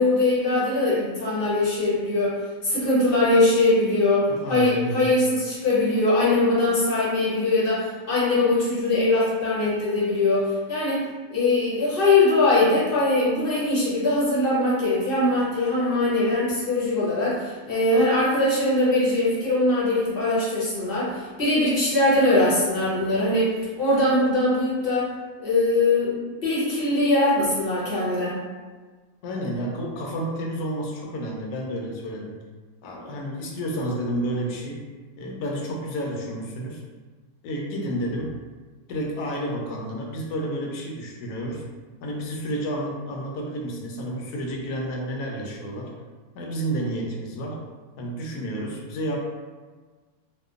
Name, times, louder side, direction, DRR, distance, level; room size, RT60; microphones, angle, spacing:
voice 1, 0.0-2.4 2.6-23.5 23.8-25.1 25.4-28.4, left 2 dB, 50° left, -7 dB, 0.7 m, -21 dB
voice 2, 4.3-5.1 29.2-32.3 32.8-34.9 35.2-36.8 37.4-38.3 38.9-41.6 42.0-45.9 46.3-47.6 48.0-49.2, right 1 dB, 85° left, -1 dB, 1.1 m, -30 dB
2.8 x 2.1 x 2.3 m, 1.4 s
omnidirectional pair, 1.6 m